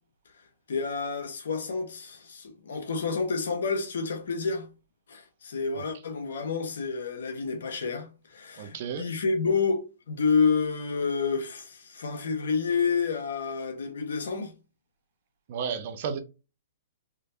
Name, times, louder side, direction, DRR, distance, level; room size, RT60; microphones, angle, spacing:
voice 1, 0.7-4.7 5.1-14.5, left 5 dB, 70° left, 1.3 m, -29 dB
voice 2, 8.6-9.0 15.5-16.2, right 7 dB, 50° right, 0.8 m, -32 dB
3.7 x 3.3 x 2.7 m
hypercardioid pair, 130°, 0 cm